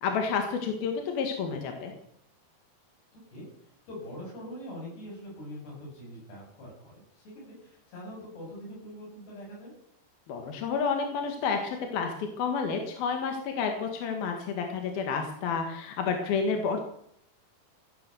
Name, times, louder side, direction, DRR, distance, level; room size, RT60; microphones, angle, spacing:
voice 1, 0.0-1.9 10.3-16.8, left 5 dB, 70° left, 4 dB, 3.5 m, -30 dB
voice 2, 3.1-3.5 3.9-9.7, equal, 90° left, -2 dB, 10.5 m, -43 dB
16.5 x 12.0 x 6.9 m, 0.70 s
omnidirectional pair, 4.6 m